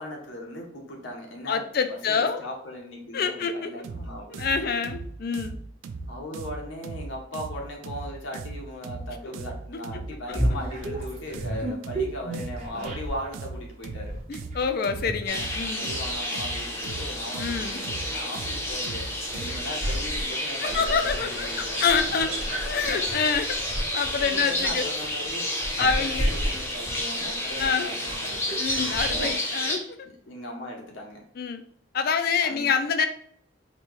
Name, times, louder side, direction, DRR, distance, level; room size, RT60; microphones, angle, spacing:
voice 1, 0.0-4.8 6.1-14.1 15.8-21.9 22.2-22.4 24.2-25.5 25.8-28.4 30.0-31.2 32.4-32.7, left 1 dB, 85° left, 0 dB, 0.9 m, -38 dB
voice 2, 1.5-2.4 3.1-3.7 4.4-5.6 10.3-10.4 14.3-15.9 17.4-17.8 20.6-23.6 23.9-24.9 25.3-25.5 25.8-26.3 27.6-27.9 28.6-29.8 31.4-31.6 31.9-33.1, left 5 dB, 50° left, 8 dB, 0.4 m, -26 dB
sound 1, 3.8-19.7, right 3 dB, 85° right, 0.3 m, -38 dB
sound 2, 10.3-13.3 13.8-18.2 18.7-29.3, right 1 dB, 35° right, 1.0 m, -33 dB
sound 3, 15.3-29.8, left 1 dB, 15° left, 0.6 m, -31 dB
4.1 x 2.2 x 3.1 m, 0.66 s
head